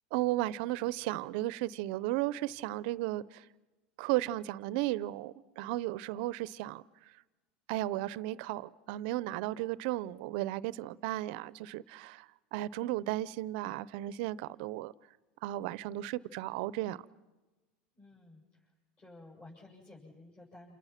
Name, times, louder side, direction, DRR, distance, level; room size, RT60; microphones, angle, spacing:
voice 1, 0.1-3.5 4.0-6.8 7.7-14.9 15.4-17.0, right 16 dB, 65° right, 0.7 m, -34 dB
voice 2, 18.0-18.4 19.0-20.8, left 2 dB, 25° left, 7.5 m, -53 dB
28.5 x 28.5 x 5.9 m
hypercardioid pair, 105°, 5 cm